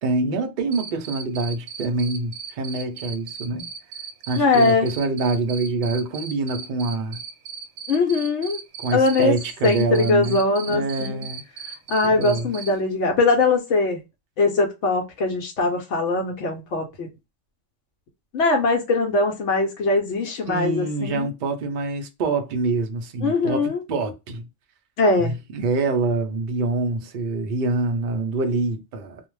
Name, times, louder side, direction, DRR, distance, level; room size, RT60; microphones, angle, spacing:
voice 1, 0.0-3.7 4.3-7.2 8.8-10.4 10.7-11.4 12.0-12.5 20.5-24.5 25.2-29.2, right 3 dB, 55° right, 0.5 m, -25 dB
Cricket, 0.7-12.7, right 7 dB, 75° right, 1.0 m, -36 dB
voice 2, 4.3-4.9 7.9-8.6 8.9-9.3 9.6-11.2 11.9-14.0 14.4-17.1 18.3-21.3 23.2-23.8 25.0-25.3, left 3 dB, 70° left, 0.9 m, -21 dB
2.4 x 2.0 x 3.1 m
omnidirectional pair, 1.3 m